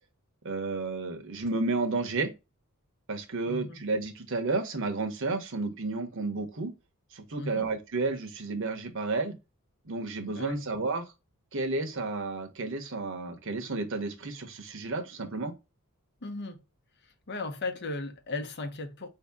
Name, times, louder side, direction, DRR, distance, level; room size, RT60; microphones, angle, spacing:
voice 1, 0.4-2.3 3.1-6.7 7.1-9.3 9.9-11.0 11.5-15.5, right 3 dB, 60° right, 1.0 m, -32 dB
voice 2, 3.5-3.8 7.4-7.7 10.3-10.7 16.2-16.6 17.0-19.1, left 2 dB, 50° left, 0.8 m, -36 dB
5.0 x 2.8 x 3.5 m
head